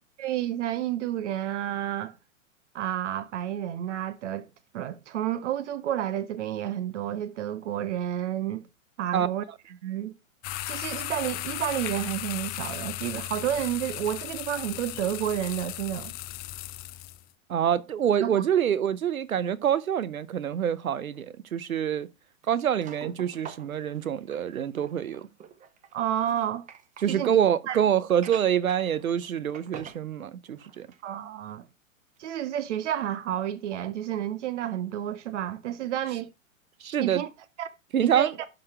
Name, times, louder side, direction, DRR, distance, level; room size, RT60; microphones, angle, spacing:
voice 1, 0.2-2.1 2.7-4.5 4.7-8.7 9.0-9.4 9.8-10.1 10.7-16.1 18.2-18.4 25.9-26.6 27.1-27.3 27.7-27.8 31.0-31.7 32.2-36.3 37.0-37.3 37.6-37.7 38.0-38.3, right 11 dB, 60° right, 0.9 m, -30 dB
sound 1, 10.4-17.2, left 17 dB, 25° left, 0.5 m, -36 dB
voice 2, 17.5-22.1 22.5-25.3 27.0-30.9 36.8-37.2 37.9-38.3, right 9 dB, 85° right, 0.8 m, -26 dB
sound 2, 21.1-21.2 22.4-27.1 28.1-29.3 29.5-30.0 30.5-31.1 31.5-31.6 32.2-32.3, right 8 dB, 20° right, 0.7 m, -47 dB
11.5 x 4.1 x 4.3 m
hypercardioid pair, 110°, 41 cm